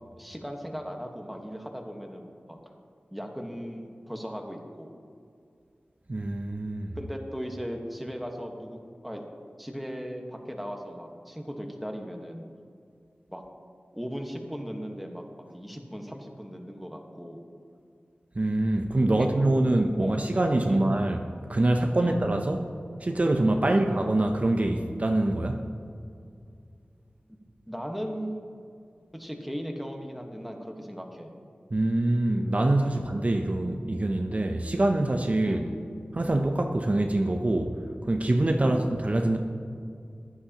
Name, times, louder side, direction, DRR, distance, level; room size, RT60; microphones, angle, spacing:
voice 1, 0.2-2.6 3.1-4.9 6.9-9.2 9.6-12.5 13.3-13.4 13.9-17.4 19.1-19.3 20.0-20.2 20.6-20.9 22.0-22.2 23.6-23.9 27.7-28.5 29.1-31.3 32.8-33.1 35.4-35.9 38.6-38.9, equal, ahead, 2 dB, 1.3 m, -37 dB
voice 2, 6.1-6.9 18.4-21.2 21.5-22.6 23.0-25.6 31.7-35.6 36.1-37.7 38.1-39.4, right 1 dB, 40° right, 4 dB, 0.6 m, -25 dB
15.5 x 11.0 x 2.9 m, 2.4 s
wide cardioid pair, 75°, 4 cm